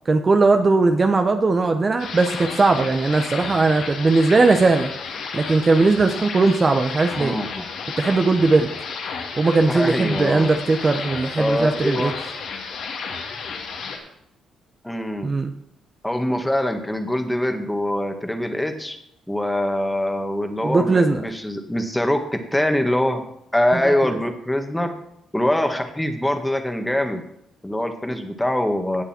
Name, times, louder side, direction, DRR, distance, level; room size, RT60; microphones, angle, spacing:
voice 1, 0.1-4.9 5.3-7.4 8.0-8.7 9.4-12.1 15.2-15.5 20.6-21.2, right 3 dB, 30° right, 6 dB, 0.9 m, -18 dB
sound 1, 2.0-14.0, left 5 dB, 75° left, 2.6 m, -32 dB
voice 2, 7.2-7.7 9.7-10.5 11.4-12.1 14.8-15.3 16.0-19.0 19.3-22.2 22.5-23.2 23.5-24.9 25.3-27.2 27.6-29.0, left 1 dB, 5° left, 5 dB, 1.7 m, -23 dB
17.5 x 6.8 x 4.5 m, 0.77 s
cardioid pair, 90°, 0 cm